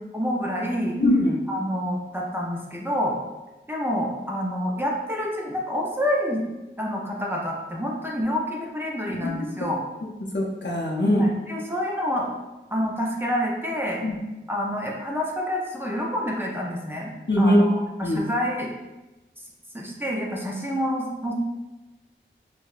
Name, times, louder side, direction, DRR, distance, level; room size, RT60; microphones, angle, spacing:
voice 1, 0.0-1.0 1.5-3.2 3.7-6.5 6.8-9.8 11.0-12.3 12.7-14.0 14.5-18.7 19.7-21.3, equal, 10° right, -3 dB, 0.6 m, -28 dB
voice 2, 1.0-1.4 9.2-9.7 10.3-11.2 14.0-14.2 17.3-17.6 18.0-18.2, left 1 dB, 60° left, -2 dB, 0.6 m, -22 dB
4.5 x 2.2 x 2.4 m, 1.1 s
wide cardioid pair, 45°, 20 cm